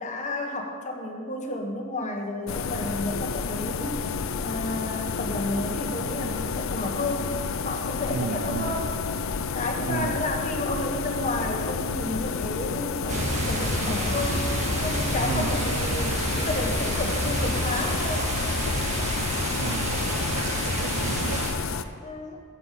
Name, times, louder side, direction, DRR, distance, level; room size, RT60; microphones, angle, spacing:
voice 1, 0.0-4.1 4.4-7.3 7.6-8.9 9.5-14.5 14.8-18.4 22.0-22.4, left 2 dB, 35° left, 2 dB, 1.3 m, -31 dB
sound 1, 2.5-21.8, left 5 dB, 65° left, 0.5 m, -30 dB
voice 2, 8.1-8.8 9.8-10.2 15.2-15.8 19.6-21.5, right 5 dB, 55° right, 13 dB, 0.4 m, -34 dB
sound 2, 13.1-21.5, right 1 dB, 35° right, 1.7 m, -29 dB
8.7 x 7.2 x 8.2 m, 2.2 s
head